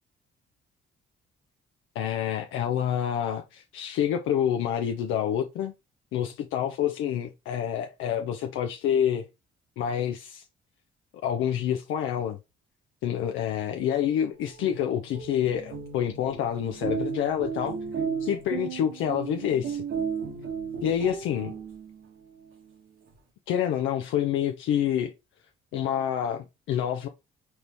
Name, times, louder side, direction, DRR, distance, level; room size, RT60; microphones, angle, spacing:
voice 1, 2.0-5.7 6.1-9.3 9.8-10.4 11.2-12.4 13.0-17.8 18.2-19.8 20.8-21.5 23.5-25.1 25.7-27.1, left 9 dB, 85° left, 0.5 m, -27 dB
sound 1, 14.4-22.1, right 6 dB, 85° right, 1.5 m, -34 dB
4.4 x 2.6 x 3.4 m
cardioid pair, 90°, 20 cm